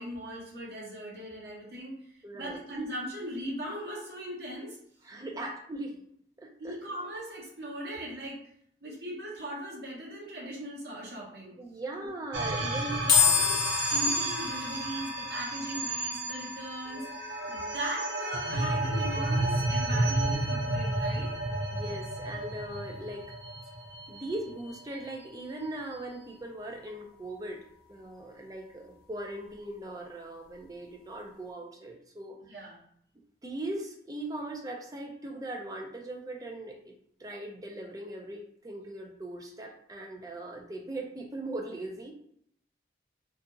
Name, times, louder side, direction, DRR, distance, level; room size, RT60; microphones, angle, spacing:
voice 1, 0.0-4.8 5.3-5.5 6.6-8.4 8.8-11.6 12.0-12.1 12.6-17.1 17.5-21.3 32.5-32.8, right 1 dB, 70° right, -4 dB, 0.9 m, -39 dB
voice 2, 2.2-2.6 5.0-6.0 6.4-6.7 11.6-13.0 21.7-23.2 24.1-27.6 27.9-32.4 33.4-36.9 37.2-42.1, right 1 dB, 20° right, 1 dB, 0.4 m, -39 dB
sound 1, 12.3-24.8, right 2 dB, 85° right, 0.5 m, -32 dB
sound 2, 13.1-26.4, left 7 dB, 55° left, 0.8 m, -34 dB
2.7 x 2.5 x 2.4 m, 0.67 s
head